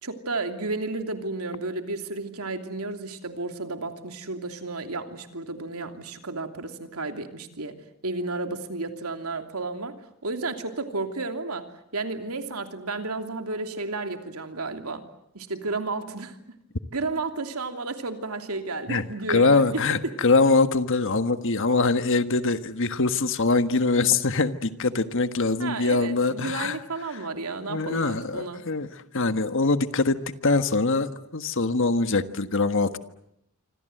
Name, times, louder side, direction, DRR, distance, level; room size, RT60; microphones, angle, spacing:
voice 1, 0.0-7.8 8.0-10.0 10.2-15.0 15.3-16.6 16.9-19.8 25.6-28.6, right 3 dB, 85° right, 6 dB, 3.0 m, -32 dB
voice 2, 18.9-26.8 27.1-27.2 27.7-28.9 29.1-30.2 30.4-33.0, left 3 dB, 60° left, 10 dB, 1.5 m, -23 dB
27.0 x 25.5 x 7.9 m, 0.79 s
head